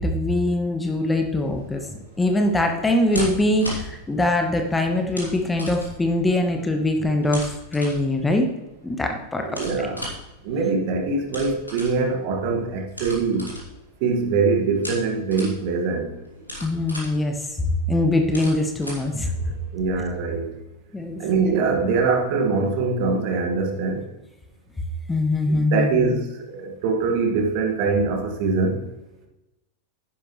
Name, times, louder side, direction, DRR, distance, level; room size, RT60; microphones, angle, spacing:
voice 1, 0.0-8.5 8.8-9.9 16.6-17.6 17.9-19.5 20.9-21.2 25.1-26.1, left 1 dB, 10° left, 4 dB, 1.3 m, -23 dB
sound 1, 1.4-20.0, left 1 dB, 85° left, 3.0 m, -38 dB
voice 2, 9.5-10.0 10.4-13.5 14.0-16.1 19.7-20.5 21.2-24.0 25.5-26.2 26.5-28.8, right 4 dB, 45° right, 3 dB, 1.9 m, -23 dB
11.5 x 10.0 x 3.2 m, 0.97 s
figure-of-eight pair, 90°, 0 cm